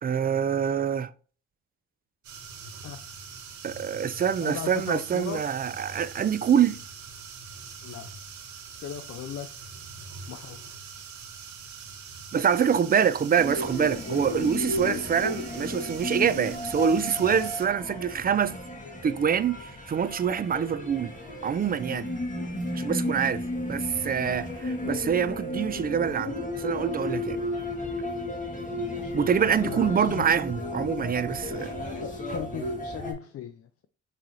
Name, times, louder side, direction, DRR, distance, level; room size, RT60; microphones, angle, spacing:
voice 1, 0.0-1.1 3.6-6.8 12.3-18.6 19.0-21.1 21.4-22.1 22.7-23.4 23.7-27.4 29.1-31.7, right 7 dB, 30° right, 0.4 m, -25 dB
sound 1, 2.2-17.7, right 5 dB, 70° right, 1.1 m, -43 dB
voice 2, 4.4-5.4 7.8-8.1 8.8-9.8 10.3-10.6 14.8-15.1 25.5-26.2 28.6-30.3 32.0-33.9, left 10 dB, 50° left, 0.5 m, -38 dB
sound 2, 13.4-33.1, left 1 dB, 25° left, 1.7 m, -34 dB
6.0 x 3.2 x 2.7 m
cardioid pair, 90°, 30 cm